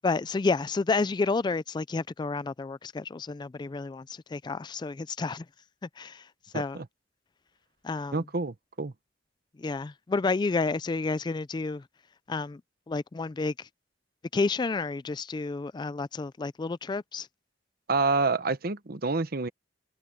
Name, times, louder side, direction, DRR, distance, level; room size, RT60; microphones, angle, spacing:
voice 1, 0.0-5.5 6.0-6.3 6.5-6.8 7.8-8.2 9.6-11.8 12.3-12.6 12.9-13.7 14.3-17.3, left 3 dB, 25° left, 0.3 m, -30 dB
voice 2, 6.5-6.9 8.1-8.9 17.9-19.5, right 3 dB, 55° right, 1.0 m, -28 dB
head